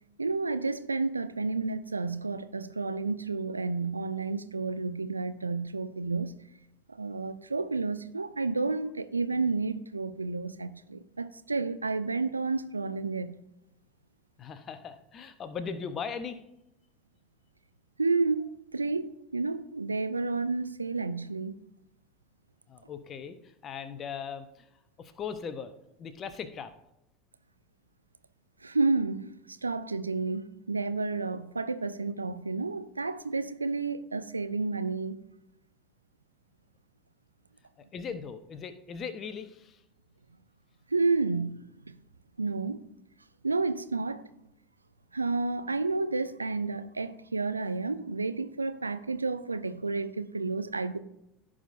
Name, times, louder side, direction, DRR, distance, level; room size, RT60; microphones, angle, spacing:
voice 1, 0.2-6.3 7.0-13.3 18.0-21.6 28.6-29.3 29.6-35.2 40.9-41.9 42.4-42.8 43.4-44.3 45.1-51.0, right 3 dB, 85° right, 0.3 m, -31 dB
voice 2, 14.4-16.4 22.7-24.7 25.0-25.7 26.0-26.7 37.8-39.8, left 6 dB, 35° left, 0.8 m, -39 dB
15.0 x 5.0 x 2.6 m
figure-of-eight pair, 75°, 0 cm